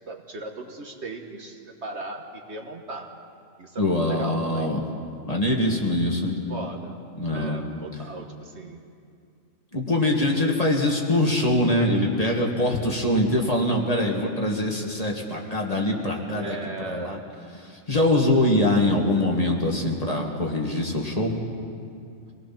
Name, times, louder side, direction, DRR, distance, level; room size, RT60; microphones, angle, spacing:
voice 1, 0.1-3.1 3.6-4.7 6.2-7.0 7.3-8.8 16.3-17.2, right 2 dB, 55° right, 3 dB, 1.5 m, -37 dB
voice 2, 3.8-4.8 5.3-6.4 7.2-7.6 9.7-17.2 17.9-21.3, left 1 dB, 30° left, -1 dB, 2.1 m, -23 dB
25.5 x 18.5 x 6.0 m, 2.4 s
omnidirectional pair, 1.4 m